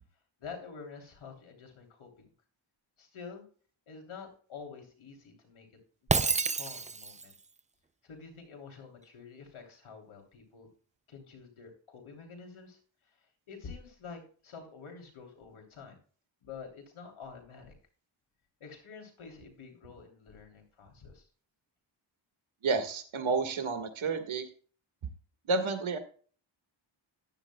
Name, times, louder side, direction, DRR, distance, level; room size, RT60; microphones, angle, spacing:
voice 1, 0.4-2.3 3.0-3.4 3.9-5.7 6.0-7.3 8.0-10.7 11.1-12.8 13.0-13.2 13.5-16.0 16.4-17.7 18.6-21.3, left 5 dB, 80° left, 2 dB, 3.3 m, -48 dB
Shatter, 6.1-7.3, right 4 dB, 15° right, 0.4 m, -29 dB
voice 2, 22.6-24.5 25.4-26.0, right 4 dB, 75° right, 6 dB, 1.7 m, -30 dB
14.0 x 10.5 x 2.3 m, 0.42 s
cardioid pair, 80°, 48 cm